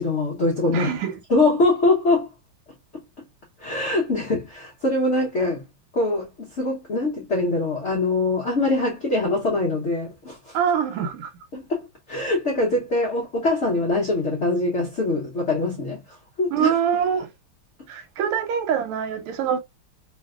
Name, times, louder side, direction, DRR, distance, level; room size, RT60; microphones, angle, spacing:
voice 1, 0.0-0.9 1.3-2.3 3.6-5.6 5.9-10.6 11.5-16.0 16.4-16.8, left 2 dB, 70° left, 0.6 m, -23 dB
voice 2, 0.7-1.1 10.5-11.3 16.5-17.3 17.9-19.6, right 8 dB, 85° right, 1.6 m, -24 dB
3.3 x 2.5 x 2.3 m
omnidirectional pair, 2.4 m